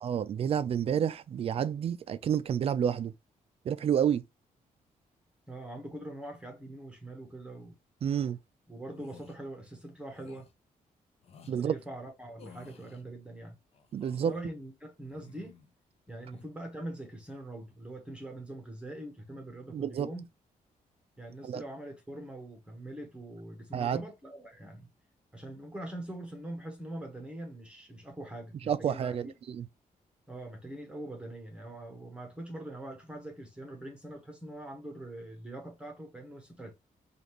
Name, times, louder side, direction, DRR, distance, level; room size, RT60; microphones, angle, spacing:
voice 1, 0.0-3.1 3.6-4.2 8.0-8.4 11.5-11.8 13.9-14.3 19.7-20.1 21.4-21.6 23.7-24.0 28.7-29.7, right 8 dB, 45° right, 0.4 m, -29 dB
voice 2, 5.5-7.8 8.7-10.5 11.5-13.5 14.1-15.6 16.1-20.2 21.2-24.9 25.3-29.3 30.3-36.7, right 1 dB, 5° right, 1.0 m, -43 dB
sound 1, 8.9-9.4 10.1-10.5 11.2-11.6 12.4-13.0 13.7-14.4 15.0-15.7 16.1-16.5, left 6 dB, 45° left, 0.6 m, -54 dB
5.1 x 2.4 x 3.0 m
wide cardioid pair, 165°, 14 cm